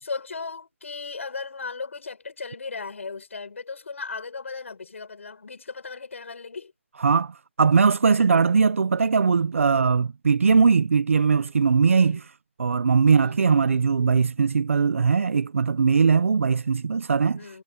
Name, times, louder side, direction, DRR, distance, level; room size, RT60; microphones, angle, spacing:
voice 1, 0.0-6.7 11.9-12.2 13.1-13.4 17.2-17.6, left 4 dB, 70° left, 6.8 m, -36 dB
voice 2, 7.0-12.3 12.6-17.4, right 5 dB, 75° right, 0.5 m, -20 dB
hypercardioid pair, 175°, 7 cm